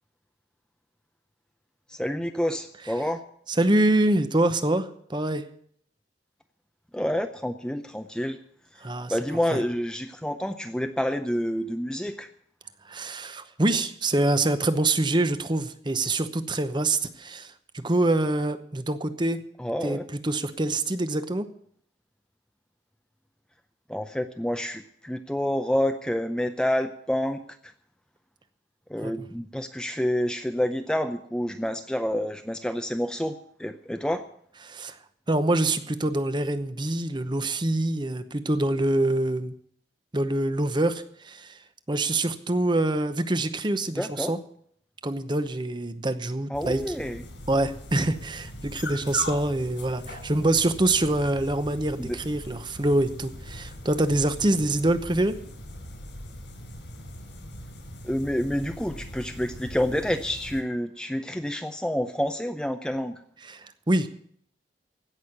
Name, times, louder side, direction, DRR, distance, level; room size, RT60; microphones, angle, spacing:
voice 1, 1.9-3.2 6.9-8.4 9.1-12.3 19.6-20.0 23.9-27.4 28.9-34.3 43.9-44.3 46.5-47.2 52.0-52.2 58.0-63.2, equal, 5° left, 7 dB, 0.5 m, -28 dB
voice 2, 3.6-5.5 8.8-9.1 9.5-9.6 12.8-19.4 19.8-21.5 29.0-29.3 34.6-35.0 35.3-39.5 40.1-41.6 41.9-44.4 45.0-46.8 47.5-55.4 63.4-64.1, right 2 dB, 25° right, 11 dB, 0.9 m, -25 dB
sound 1, 46.5-60.6, left 1 dB, 85° left, 4.0 m, -40 dB
16.5 x 6.3 x 9.6 m, 0.65 s
head